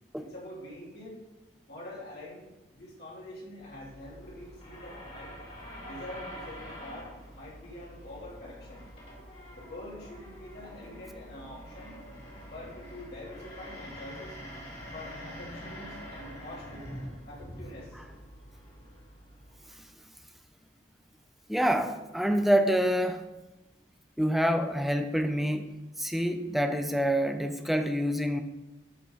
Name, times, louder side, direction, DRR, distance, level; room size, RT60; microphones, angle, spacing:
voice 1, 0.2-1.2 1.7-5.3 5.8-8.9 9.5-12.0 12.4-14.4 14.9-16.9 17.3-18.0, left 1 dB, 55° left, -5 dB, 3.4 m, -45 dB
sound 1, 3.6-20.0, equal, 35° left, 3.4 m, -45 dB
voice 2, 21.5-23.2 24.2-28.4, equal, ahead, 6 dB, 0.7 m, -27 dB
13.0 x 6.1 x 4.2 m, 1.0 s
head